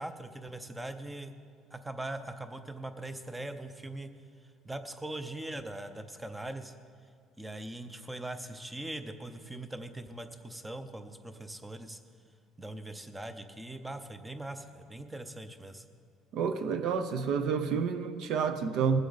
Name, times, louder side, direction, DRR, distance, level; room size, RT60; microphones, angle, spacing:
voice 1, 0.0-1.3 1.7-4.1 4.6-6.7 7.4-12.0 12.6-15.8, right 1 dB, 5° right, 9 dB, 0.6 m, -41 dB
voice 2, 16.3-19.0, right 6 dB, 55° right, 9 dB, 0.7 m, -29 dB
20.0 x 8.1 x 4.0 m, 2.2 s
cardioid pair, 160°, 0 cm